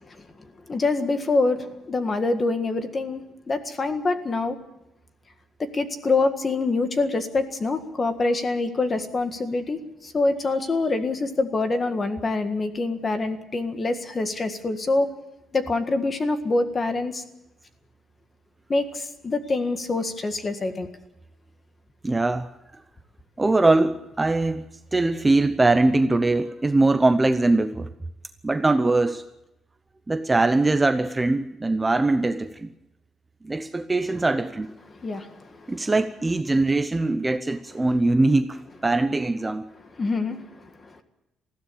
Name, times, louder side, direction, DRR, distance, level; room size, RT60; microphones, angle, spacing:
voice 1, 0.7-4.6 5.6-15.1 15.5-17.2 18.7-20.9 35.0-35.7 40.0-40.5 40.8-41.0, left 3 dB, 25° left, 1.7 m, -25 dB
voice 2, 22.0-22.5 23.4-27.9 28.4-29.2 30.1-32.7 33.4-34.7 35.7-39.7, right 2 dB, 15° right, 0.7 m, -22 dB
20.0 x 15.5 x 8.9 m
cardioid pair, 155°, 0 cm